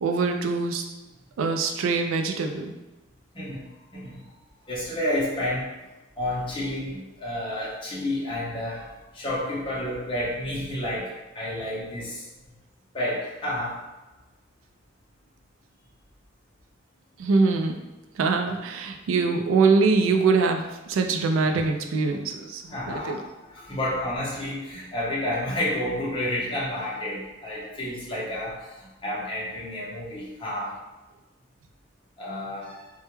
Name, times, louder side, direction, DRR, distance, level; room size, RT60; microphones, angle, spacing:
voice 1, 0.0-0.8 1.4-2.7 17.2-17.8 18.2-23.2, right 4 dB, 85° right, 4 dB, 0.3 m, -23 dB
voice 2, 3.3-3.7 3.9-4.2 4.7-5.7 6.2-12.3 12.9-13.8 22.7-30.8 32.2-32.9, left 1 dB, 25° left, -7 dB, 0.6 m, -30 dB
2.2 x 2.1 x 2.9 m, 1.1 s
head